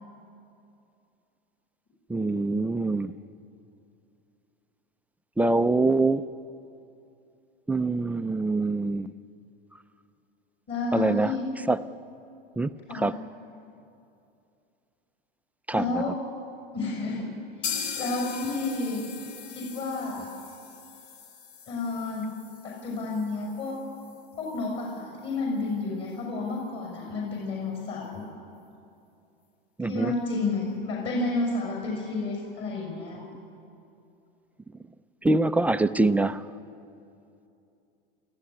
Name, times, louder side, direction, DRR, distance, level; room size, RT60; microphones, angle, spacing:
voice 1, 2.1-3.1 5.4-6.2 7.7-9.1 10.9-11.3 11.7-11.8 12.6-13.1 15.7-16.0 29.8-30.1 35.2-36.4, right 2 dB, 5° right, 11 dB, 0.5 m, -24 dB
voice 2, 10.7-11.4 12.9-13.2 15.7-16.2 16.7-17.3 17.6-19.0 19.5-20.3 21.7-22.3 22.6-23.8 24.4-28.2 29.8-33.2, left 3 dB, 40° left, -1 dB, 6.5 m, -31 dB
sound 1, 17.6-25.4 25.7-25.8 26.1-26.2 26.6-26.7, left 7 dB, 65° left, 2.4 m, -40 dB
30.0 x 14.5 x 10.0 m, 2.7 s
hypercardioid pair, 115°, 30 cm